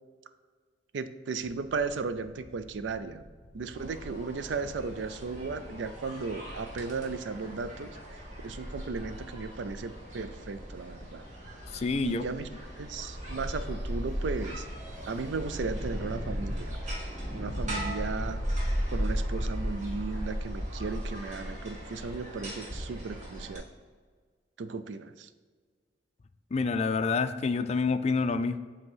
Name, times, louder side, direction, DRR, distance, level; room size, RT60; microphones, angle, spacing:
voice 1, 0.9-3.2 3.5-8.0 8.4-11.2 12.0-12.5 12.8-14.7 15.1-16.8 17.3-18.4 18.9-23.6 24.6-25.3, right 4 dB, 80° right, 11 dB, 0.4 m, -35 dB
sound 1, 1.4-20.9, equal, 10° left, 1.1 m, -52 dB
sound 2, 3.7-23.6, equal, 45° right, 1.6 m, -36 dB
voice 2, 11.7-12.2 26.5-28.6, left 4 dB, 35° left, 11 dB, 0.3 m, -27 dB
sound 3, 12.6-18.9, equal, 15° right, 1.0 m, -44 dB
7.9 x 2.9 x 5.5 m, 1.5 s
head